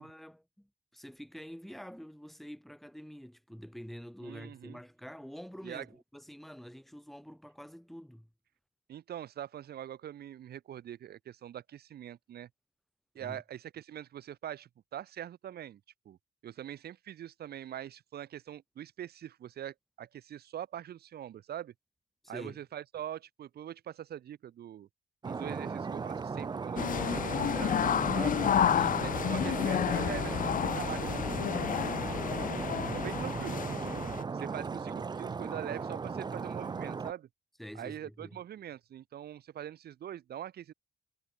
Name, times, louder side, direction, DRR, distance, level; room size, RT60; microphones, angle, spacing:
voice 1, 0.0-8.3 13.2-13.4 22.2-22.6 28.7-29.1 37.6-38.4, equal, ahead, 7.2 m, -47 dB
voice 2, 4.2-4.8 5.6-5.9 8.9-12.5 13.1-15.8 16.0-16.2 16.4-21.7 22.3-24.9 25.2-28.4 29.0-32.0 32.9-34.0 34.3-37.3 37.7-40.7, right 11 dB, 70° right, 1.5 m, -43 dB
Stream, 25.2-37.1, right 5 dB, 25° right, 0.6 m, -37 dB
sound 1, 26.8-34.2, left 9 dB, 55° left, 0.9 m, -30 dB
wide cardioid pair, 145°, 17 cm